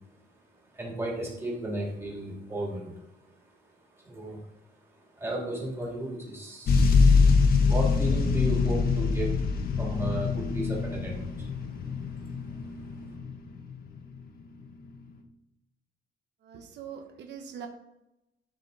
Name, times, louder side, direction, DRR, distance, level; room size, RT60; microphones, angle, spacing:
voice 1, 0.7-6.9 7.4-11.5 11.8-12.4, right 1 dB, 15° right, -4 dB, 2.9 m, -35 dB
sound 1, 6.7-14.2 14.9-15.0, left 4 dB, 55° left, 1.3 m, -24 dB
voice 2, 16.4-17.7, right 7 dB, 75° right, 4 dB, 1.1 m, -42 dB
12.0 x 5.9 x 4.1 m, 0.90 s
cardioid pair, 175°, 18 cm